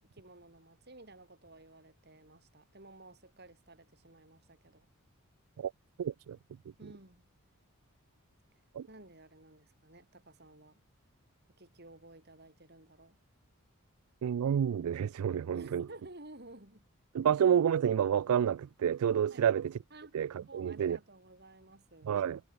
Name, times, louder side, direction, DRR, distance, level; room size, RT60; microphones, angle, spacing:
voice 1, 0.0-4.9 6.8-7.3 8.9-10.8 11.6-13.1 15.5-16.9 19.3-19.5 19.9-20.1 20.5-22.1, right 2 dB, 45° right, 4.4 m, -54 dB
voice 2, 6.0-6.4 8.7-8.9 14.2-15.9 17.1-19.8 20.1-21.0 22.0-22.4, right 8 dB, 80° right, 0.3 m, -29 dB
head